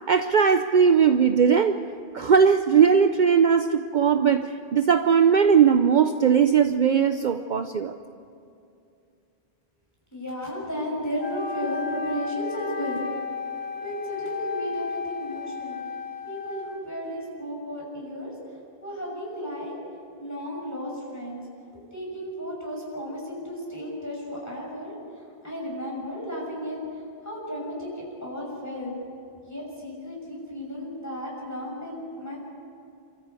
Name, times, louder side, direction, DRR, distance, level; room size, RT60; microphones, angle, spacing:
voice 1, 0.1-1.8 2.1-7.9, right 7 dB, 55° right, 8 dB, 0.8 m, -19 dB
voice 2, 10.1-13.0 13.8-15.8 16.2-18.3 18.8-19.7 20.2-21.4 21.9-24.9 25.4-26.8 27.2-28.9 29.5-32.4, equal, 15° left, -3 dB, 6.3 m, -34 dB
Wind instrument woodwind instrument, 11.2-17.1, left 5 dB, 85° left, 1.6 m, -33 dB
28.5 x 13.5 x 8.3 m, 2.5 s
omnidirectional pair, 1.0 m